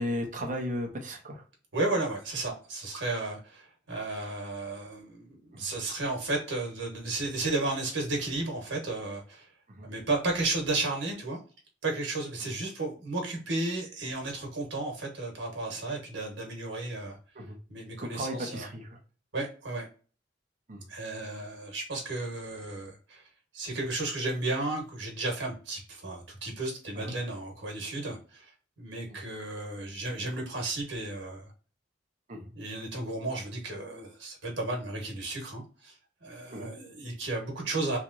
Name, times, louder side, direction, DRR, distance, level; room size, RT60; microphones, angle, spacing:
voice 1, 0.0-1.4 5.5-5.6 9.7-9.9 12.4-12.6 17.3-17.6 18.0-19.0 20.7-20.9 27.0-27.2 29.1-29.2 32.3-32.5 36.5-36.7, equal, 45° right, 2 dB, 0.9 m, -35 dB
voice 2, 1.7-9.5 9.8-11.4 11.8-17.2 17.7-18.7 19.3-19.9 20.9-23.3 23.5-28.5 28.8-31.5 32.5-35.9 36.2-38.0, right 2 dB, 90° right, 0 dB, 1.3 m, -33 dB
3.3 x 3.0 x 2.6 m, 0.37 s
head